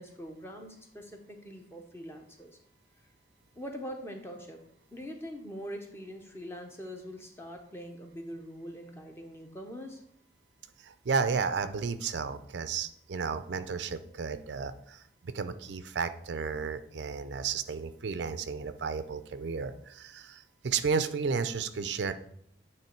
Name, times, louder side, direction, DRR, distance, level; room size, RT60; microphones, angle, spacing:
voice 1, 0.0-2.6 3.6-4.6 4.9-10.0, equal, 15° left, 3 dB, 0.8 m, -43 dB
voice 2, 10.8-22.1, right 5 dB, 75° right, 11 dB, 0.5 m, -33 dB
9.0 x 3.1 x 4.4 m, 0.68 s
head